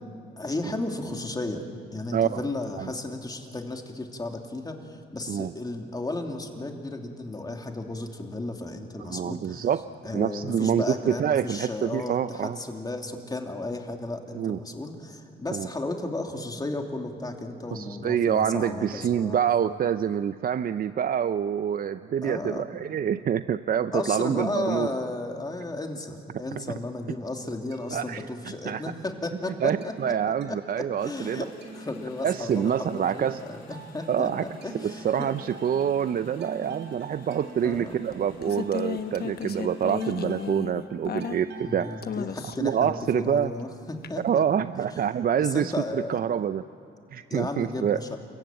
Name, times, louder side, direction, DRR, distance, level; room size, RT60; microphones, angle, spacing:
voice 1, 0.4-1.6 1.9-9.7 10.0-19.4 22.2-22.6 23.9-29.9 30.5-33.6 33.9-34.3 34.6-35.3 37.6-38.0 41.6-44.4 44.8-44.9 45.4-46.2 47.3-48.2, left 2 dB, 20° left, 3 dB, 2.8 m, -34 dB
voice 2, 2.1-2.4 2.8-2.9 5.3-5.5 9.0-9.9 10.1-12.6 14.3-14.6 15.5-15.7 17.7-24.9 26.5-26.6 27.9-28.2 28.6-28.8 29.6-31.4 32.2-33.4 34.1-34.5 34.8-41.9 42.6-43.5 44.2-46.6 47.1-48.0, right 8 dB, 50° right, 12 dB, 0.5 m, -26 dB
sound 1, 27.7-28.9 29.3-42.1, right 3 dB, 65° right, 3.7 m, -46 dB
Motorcycle / Engine, 31.0-40.5, left 5 dB, 90° left, 3.2 m, -53 dB
sound 2, 37.7-41.7 42.0-42.8 44.0-44.1, left 8 dB, 55° left, 1.1 m, -34 dB
28.5 x 15.5 x 9.0 m, 2.5 s
cardioid pair, 90°, 20 cm